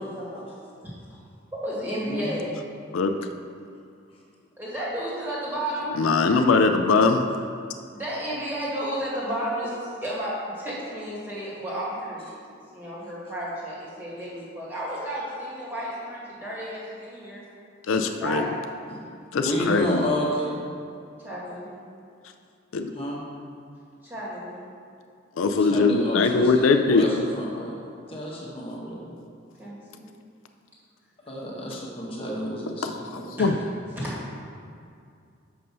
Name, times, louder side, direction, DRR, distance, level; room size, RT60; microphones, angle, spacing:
voice 1, 0.0-0.6 0.8-1.2 1.5-2.5 4.6-6.0 7.9-12.3 12.7-17.4 17.9-18.5 21.2-21.8 24.0-24.6 29.6-30.1 34.0-34.3, equal, 10° right, -7 dB, 1.9 m, -32 dB
voice 2, 1.9-2.3 18.9-19.0 19.4-20.7 22.9-23.2 25.6-27.8 28.1-29.0 31.3-33.4, equal, 30° left, -4 dB, 1.3 m, -31 dB
voice 3, 6.0-7.2 17.9-18.5 19.3-20.0 22.7-22.9 25.4-27.1 32.8-33.5, left 4 dB, 85° left, 7 dB, 0.4 m, -21 dB
6.8 x 5.4 x 5.5 m, 2.4 s
head